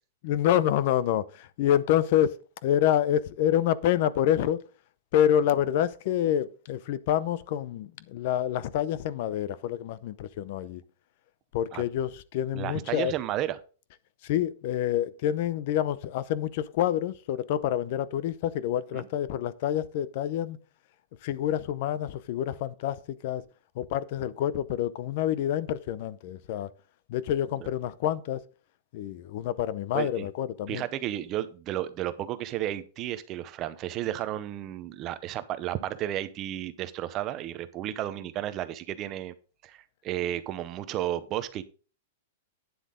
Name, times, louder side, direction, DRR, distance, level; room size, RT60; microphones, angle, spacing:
voice 1, 0.2-2.4 2.6-4.6 5.1-10.8 11.5-13.1 14.2-20.6 21.2-23.4 23.8-26.7 27.1-28.4 28.9-30.8, left 11 dB, 40° left, 0.6 m, -27 dB
voice 2, 12.5-13.6 18.9-19.1 27.6-27.7 29.9-30.3 30.7-39.3 39.6-41.6, right 12 dB, 25° right, 0.7 m, -33 dB
9.5 x 7.6 x 3.8 m
supercardioid pair, 175°, 0 cm